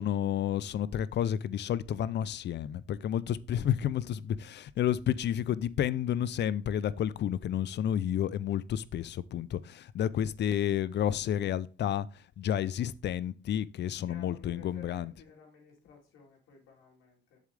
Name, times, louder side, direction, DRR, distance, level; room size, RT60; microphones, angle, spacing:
voice 1, 0.0-12.1 12.4-15.1, left 10 dB, 60° left, 0.6 m, -31 dB
voice 2, 14.0-17.4, left 6 dB, 90° left, 3.5 m, -55 dB
7.4 x 7.3 x 3.4 m
cardioid pair, 90°, 20 cm